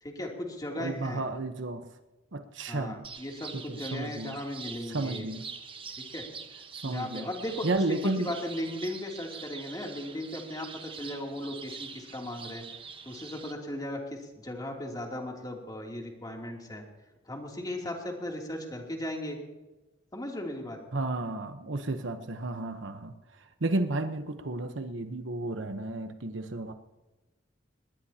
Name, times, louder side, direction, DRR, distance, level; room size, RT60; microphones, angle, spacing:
voice 1, 0.0-1.2 2.7-5.3 6.1-6.2 6.8-12.6 13.0-16.8 17.3-19.4 20.1-20.8, left 1 dB, 20° left, 0 dB, 3.0 m, -37 dB
voice 2, 0.8-1.8 2.3-3.0 3.5-4.4 4.9-5.5 6.8-7.3 7.6-8.3 20.9-23.1 23.6-26.7, right 2 dB, 90° right, 8 dB, 1.1 m, -32 dB
sound 1, 3.0-13.5, right 5 dB, 30° right, 1.3 m, -44 dB
21.0 x 20.0 x 2.9 m, 1.1 s
head